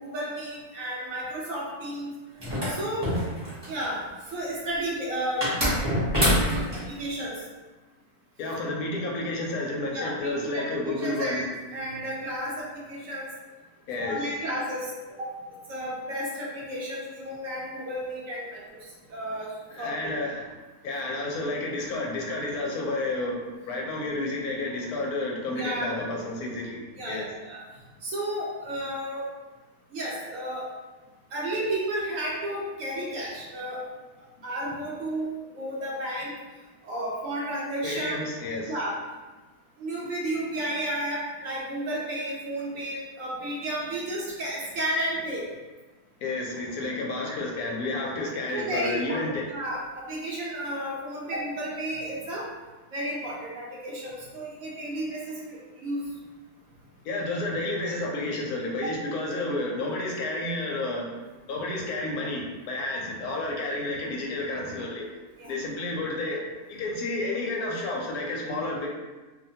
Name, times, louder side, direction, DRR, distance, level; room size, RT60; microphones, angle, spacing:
voice 1, 0.0-2.1 2.7-3.1 3.7-4.0 4.3-5.5 6.3-6.5 6.9-7.3 9.9-13.3 14.0-14.9 15.2-15.3 15.7-19.5 19.8-20.0 25.6-25.9 27.0-27.6 28.0-29.3 29.9-30.7 31.3-33.8 34.4-36.3 36.8-38.2 38.7-39.0 39.8-45.5 47.3-47.4 48.5-49.2 49.5-52.5 52.9-56.0 58.8-58.9 65.4-65.5, right 1 dB, 70° right, -4 dB, 0.9 m, -32 dB
sound 1, 2.4-3.8 5.4-6.8, equal, 25° right, 0.6 m, -25 dB
voice 2, 8.4-11.5 13.9-14.3 19.7-20.5 20.8-27.3 37.8-38.7 46.2-49.5 57.0-61.1 61.5-65.0 65.5-66.4 66.7-68.9, left 2 dB, 75° left, -1 dB, 1.0 m, -31 dB
2.7 x 2.1 x 2.7 m, 1.2 s
omnidirectional pair, 1.6 m